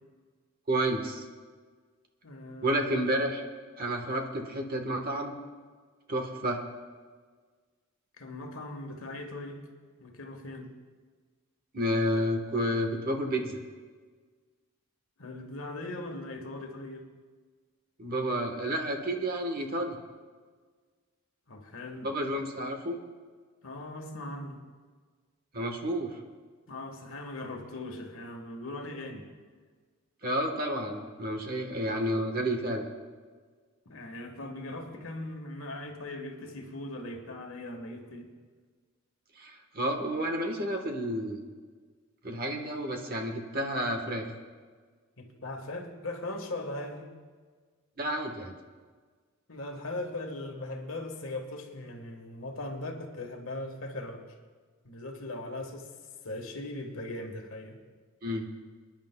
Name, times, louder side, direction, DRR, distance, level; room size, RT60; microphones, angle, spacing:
voice 1, 0.7-1.2 2.6-3.4 3.8-5.3 6.1-6.6 11.7-13.5 18.0-20.0 22.0-23.0 25.5-26.1 30.2-32.8 39.4-41.4 42.2-44.3 48.0-48.5 58.2-58.5, equal, 40° right, 4 dB, 1.2 m, -30 dB
voice 2, 2.2-2.8 8.2-9.7 10.0-10.7 15.2-17.1 21.5-22.2 23.6-24.6 26.7-29.3 33.8-38.3 45.2-47.1 49.5-54.2 54.8-55.9 56.2-57.8, left 2 dB, 70° left, 3 dB, 1.4 m, -39 dB
29.5 x 10.0 x 2.2 m, 1.5 s
head